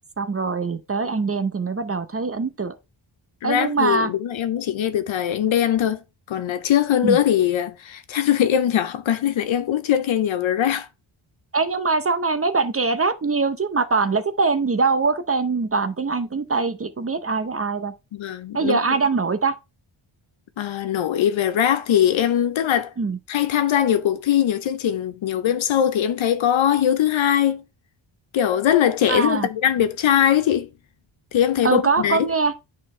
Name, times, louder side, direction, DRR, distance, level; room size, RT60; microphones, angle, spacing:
voice 1, 0.2-2.7 3.4-4.1 7.0-7.2 11.5-17.9 18.5-19.5 23.0-23.2 29.1-29.5 31.6-32.5, right 4 dB, 30° right, 0.7 m, -22 dB
voice 2, 3.4-6.0 6.3-10.9 18.1-18.8 20.6-22.9 23.3-27.6 28.3-30.7 31.3-32.3, left 10 dB, 70° left, 0.7 m, -21 dB
9.4 x 4.3 x 3.2 m
cardioid pair, 85°, 49 cm